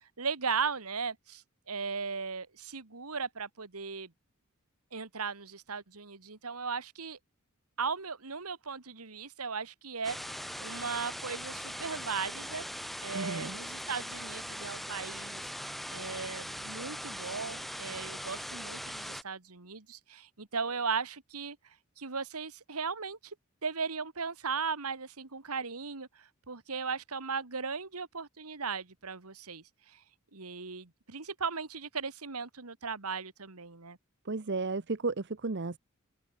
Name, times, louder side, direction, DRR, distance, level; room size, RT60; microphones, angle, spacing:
voice 1, 0.2-4.1 4.9-7.2 7.8-12.6 13.0-15.5 15.9-21.6 22.0-23.4 23.6-30.0 30.3-34.0, right 5 dB, 90° right, 2.0 m, -37 dB
sound 1, 10.0-19.2, equal, ahead, 2.0 m, -40 dB
voice 2, 13.1-13.6 34.3-35.8, right 3 dB, 50° right, 0.9 m, -33 dB
open air
head